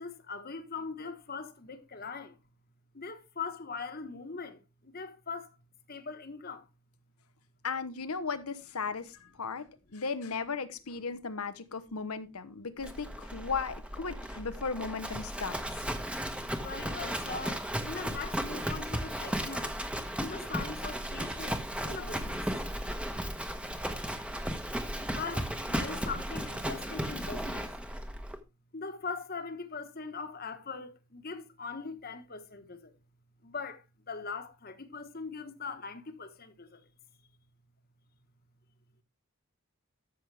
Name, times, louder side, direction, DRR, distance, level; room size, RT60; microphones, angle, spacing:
voice 1, 0.0-2.4 2.9-5.5 5.9-6.7 16.6-19.8 20.2-22.4 25.1-27.7 28.7-32.9 33.4-36.8, left 4 dB, 45° left, 1.4 m, -41 dB
voice 2, 7.6-15.6, left 5 dB, 85° left, 1.1 m, -36 dB
Livestock farm animals working animals, 12.8-28.4, equal, 5° right, 1.1 m, -35 dB
12.5 x 7.3 x 3.4 m
head